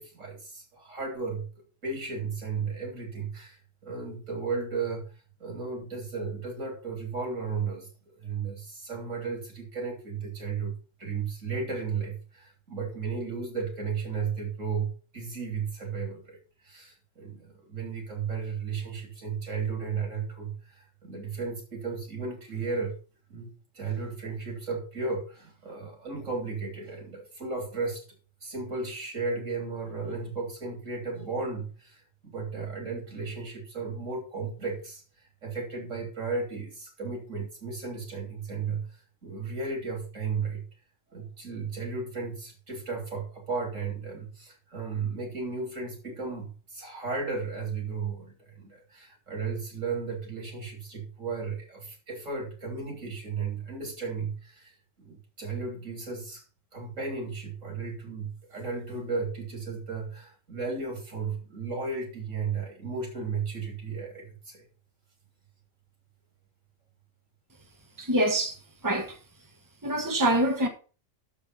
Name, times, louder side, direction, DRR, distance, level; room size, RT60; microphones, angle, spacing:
voice 1, 0.0-1.5 1.8-5.1 5.4-7.9 8.2-16.4 16.6-23.0 23.3-23.5 23.7-28.0 28.4-35.0 35.4-40.7 41.1-56.4 56.7-64.6, right 4 dB, 90° right, 3.8 m, -34 dB
voice 2, 68.0-68.6 68.8-69.2 69.8-70.7, right 1 dB, 15° right, 1.4 m, -25 dB
7.2 x 6.9 x 5.6 m
omnidirectional pair, 1.3 m